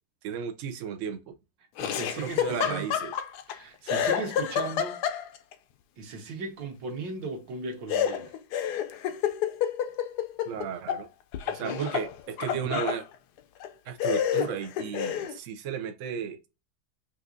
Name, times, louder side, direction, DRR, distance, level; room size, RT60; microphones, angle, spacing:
voice 1, 0.2-1.3 2.2-3.1 10.5-11.1 11.5-13.0 13.8-16.5, right 7 dB, 80° right, 0.6 m, -34 dB
Laughter, 1.8-3.6 3.9-5.5 7.9-11.0 11.3-13.0 13.6-13.7 14.0-15.4, left 9 dB, 80° left, 0.9 m, -29 dB
voice 2, 1.8-3.0 3.5-5.0 6.0-8.3 11.4-11.9 12.6-12.8, right 4 dB, 65° right, 1.6 m, -37 dB
5.9 x 2.6 x 2.5 m
omnidirectional pair, 2.3 m